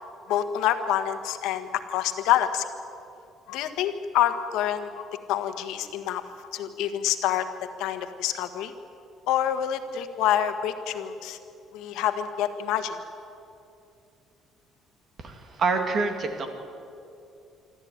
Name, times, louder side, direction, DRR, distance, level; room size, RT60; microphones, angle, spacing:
voice 1, 0.3-2.7 3.5-6.2 6.5-7.5 7.8-8.7 9.3-11.4 11.7-13.0, left 11 dB, 85° left, 8 dB, 1.5 m, -27 dB
voice 2, 15.2-16.5, right 4 dB, 40° right, 5 dB, 2.5 m, -27 dB
25.0 x 13.5 x 9.6 m, 2.6 s
cardioid pair, 150°, 0 cm